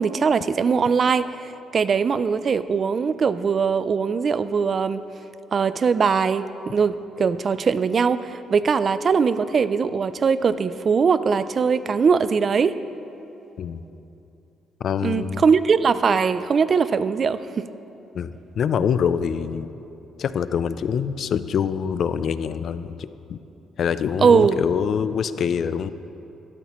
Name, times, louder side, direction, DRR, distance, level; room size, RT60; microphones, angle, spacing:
voice 1, 0.0-5.0 5.5-12.8 15.0-17.7 24.2-24.6, right 5 dB, 45° right, 14 dB, 0.4 m, -21 dB
voice 2, 14.8-15.4 18.1-19.7 20.2-23.4 23.8-25.9, left 7 dB, 60° left, 13 dB, 0.4 m, -25 dB
12.5 x 12.0 x 3.0 m, 2.9 s
cardioid pair, 90°, 0 cm